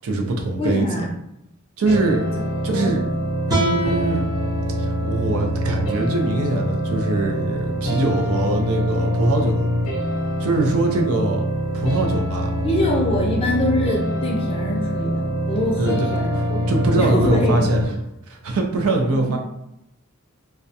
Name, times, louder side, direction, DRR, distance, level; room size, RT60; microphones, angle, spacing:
voice 1, 0.0-0.9 1.8-2.2 2.6-3.0 3.5-4.3 4.8-9.6 10.4-11.5 11.7-12.5 15.7-16.1 16.7-17.8 18.3-19.4, right 2 dB, 70° right, 2 dB, 0.4 m, -22 dB
voice 2, 0.6-1.1 2.7-2.9 12.6-16.6 16.9-17.7 18.9-19.4, left 1 dB, 25° left, -2 dB, 0.5 m, -24 dB
sound 1, 1.9-17.8, equal, 80° left, 0.7 m, -24 dB
sound 2, 3.5-6.7, equal, 15° right, 0.6 m, -29 dB
2.3 x 2.1 x 2.7 m, 0.82 s
head